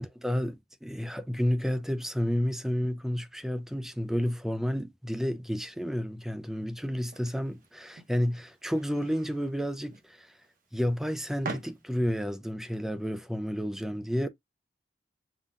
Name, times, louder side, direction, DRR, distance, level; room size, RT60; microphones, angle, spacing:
voice 1, 0.0-10.3 10.7-14.3, equal, ahead, 0.4 m, -31 dB
sound 1, 6.9-12.3, right 3 dB, 50° right, 0.9 m, -45 dB
5.7 x 2.2 x 3.6 m
head